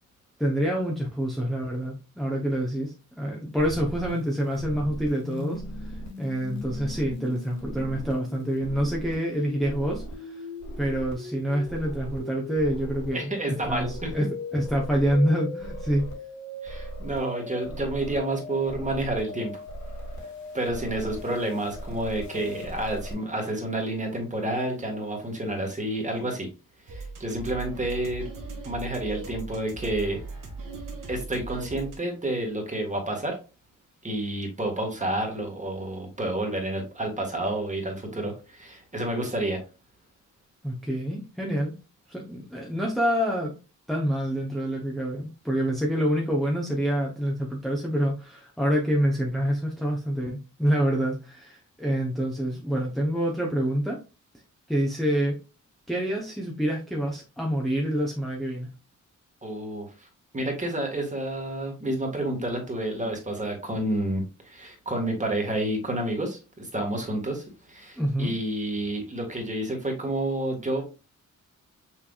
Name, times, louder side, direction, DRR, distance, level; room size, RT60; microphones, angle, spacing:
voice 1, 0.4-10.4 10.8-16.0 40.6-41.7 42.1-43.5 43.9-54.0 54.7-55.4 55.9-58.7 68.0-68.3, equal, ahead, -2 dB, 0.8 m, -27 dB
sound 1, 3.6-23.1, left 1 dB, 60° left, 1.6 m, -38 dB
voice 2, 13.1-14.1 16.6-19.6 20.5-26.5 26.9-28.3 28.6-30.2 31.1-33.4 34.0-39.6 59.4-60.1 60.3-70.8, right 1 dB, 25° right, 2 dB, 1.5 m, -29 dB
sound 2, 26.9-32.0, right 3 dB, 90° right, 1.4 m, -38 dB
5.9 x 3.3 x 2.3 m, 0.31 s
wide cardioid pair, 120°, 31 cm